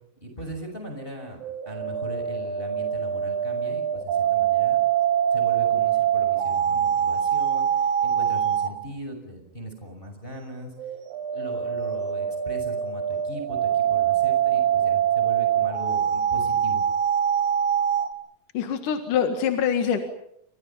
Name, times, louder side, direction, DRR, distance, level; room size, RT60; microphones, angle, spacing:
voice 1, 0.2-1.4 1.6-4.8 5.3-10.7 11.3-16.8, equal, 10° left, 4 dB, 5.8 m, -39 dB
sound 1, 1.4-8.8 10.8-18.1, right 9 dB, 65° right, 3.2 m, -24 dB
voice 2, 18.5-20.0, left 7 dB, 60° left, 6 dB, 3.1 m, -24 dB
30.0 x 26.5 x 5.7 m, 0.75 s
omnidirectional pair, 4.6 m